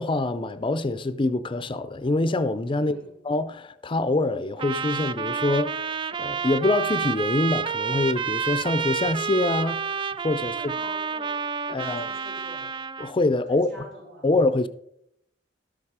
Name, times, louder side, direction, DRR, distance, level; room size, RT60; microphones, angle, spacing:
voice 1, 0.0-3.0 3.2-5.9 6.2-10.5 11.7-12.1 13.0-13.7 14.2-14.7, left 2 dB, 30° left, 0.5 m, -25 dB
voice 2, 2.7-3.1 10.4-12.7 13.5-14.3, equal, 85° right, 5.3 m, -46 dB
Trumpet, 4.6-13.2, right 6 dB, 25° right, 0.3 m, -29 dB
12.5 x 7.2 x 4.9 m
head